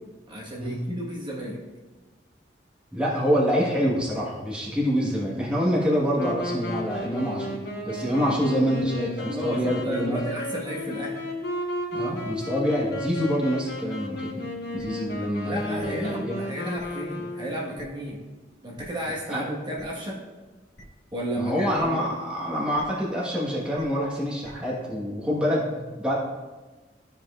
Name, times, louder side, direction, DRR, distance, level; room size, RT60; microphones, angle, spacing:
voice 1, 0.3-1.6 9.2-11.2 15.4-18.2 18.6-20.2 21.1-22.1, right 1 dB, 25° right, -3 dB, 1.4 m, -33 dB
voice 2, 2.9-10.2 11.9-14.5 14.7-16.4 19.3-19.4 21.4-26.1, equal, 5° right, -6 dB, 1.3 m, -26 dB
Wind instrument woodwind instrument, 6.1-17.8, left 1 dB, 65° left, 1.2 m, -33 dB
sound 1, 14.8-14.9 15.8-15.9 16.8-16.9 17.8-17.9 18.8-18.9 19.8-19.9 20.8-20.9 21.8-21.9 22.7-22.8 23.7-23.8 24.4-24.5, equal, 85° left, 2.0 m, -47 dB
13.0 x 5.1 x 2.4 m, 1.2 s
head